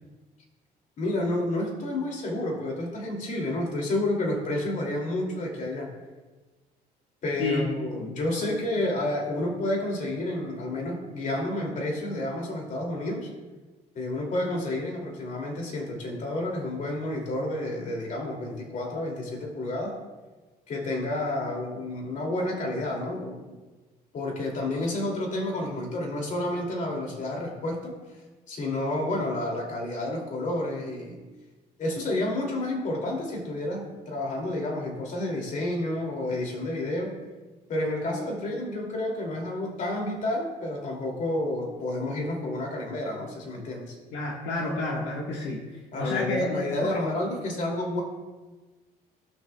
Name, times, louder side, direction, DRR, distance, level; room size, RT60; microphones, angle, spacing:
voice 1, 1.0-5.9 7.2-13.3 13.9-19.9 20.7-23.6 24.1-28.0 28.5-31.2 31.8-37.1 37.7-44.0 45.9-48.0, left 1 dB, 50° left, 0 dB, 2.6 m, -30 dB
voice 2, 44.1-45.6 46.0-47.0, left 2 dB, 85° left, -2 dB, 1.5 m, -30 dB
18.0 x 6.2 x 2.3 m, 1.3 s
cardioid pair, 110°, 17 cm